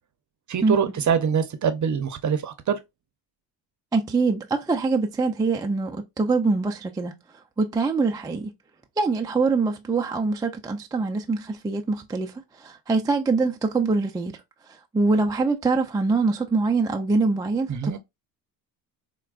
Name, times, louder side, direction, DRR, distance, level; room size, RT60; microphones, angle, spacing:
voice 1, 0.5-2.8 17.7-18.0, right 7 dB, 40° right, 0.7 m, -24 dB
voice 2, 3.9-7.2 7.6-8.5 9.0-14.3 14.7-18.0, right 3 dB, 10° right, 0.3 m, -24 dB
4.4 x 2.2 x 2.4 m
cardioid pair, 85°, 48 cm